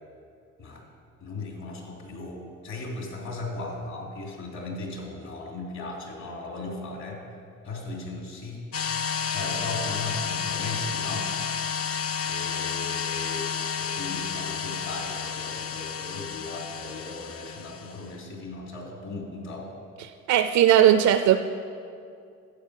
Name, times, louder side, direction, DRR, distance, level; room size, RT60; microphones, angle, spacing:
voice 1, 1.2-7.3 7.6-8.7 9.0-11.3 12.3-13.5 13.8-19.7, left 2 dB, 65° left, -1 dB, 3.1 m, -37 dB
sound 1, 8.7-18.1, left 7 dB, 50° left, 0.6 m, -31 dB
voice 2, 20.3-21.4, right 11 dB, 70° right, 9 dB, 0.5 m, -18 dB
12.0 x 7.9 x 6.5 m, 2.4 s
cardioid pair, 90°, 30 cm